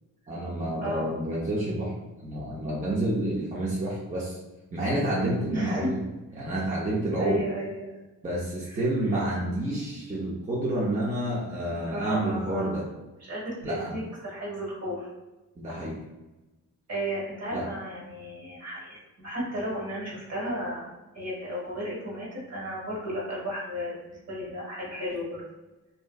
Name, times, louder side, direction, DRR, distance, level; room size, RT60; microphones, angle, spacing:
voice 1, 0.3-4.4 4.7-6.0 6.4-7.5 8.2-12.8 13.6-14.0 15.6-16.0 17.5-17.7, right 1 dB, 25° right, -6 dB, 0.6 m, -29 dB
voice 2, 0.8-1.1 5.5-5.9 7.2-7.9 8.6-8.8 11.7-12.7 13.2-15.1 16.9-20.9 21.1-23.9 24.3-25.4, equal, 50° right, -5 dB, 1.4 m, -34 dB
3.0 x 2.6 x 2.2 m, 1.1 s
cardioid pair, 120°, 32 cm